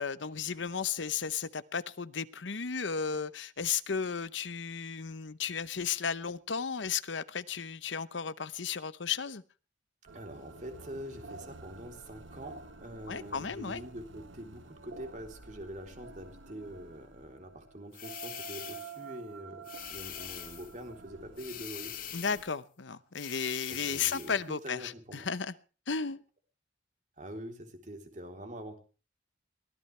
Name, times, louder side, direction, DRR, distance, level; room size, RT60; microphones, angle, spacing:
voice 1, 0.0-9.4 13.1-13.8 22.1-25.5 25.9-26.2, left 6 dB, 75° left, 15 dB, 0.9 m, -34 dB
voice 2, 10.1-21.9 23.7-24.4 24.6-25.3 27.2-28.8, equal, 40° right, 4 dB, 3.5 m, -45 dB
sound 1, 10.1-22.4, right 5 dB, 85° right, 1.5 m, -50 dB
sound 2, 17.9-19.0 19.6-20.8 21.4-22.5 23.1-24.4, left 11 dB, 45° left, 2.4 m, -43 dB
23.0 x 18.0 x 3.3 m, 0.37 s
head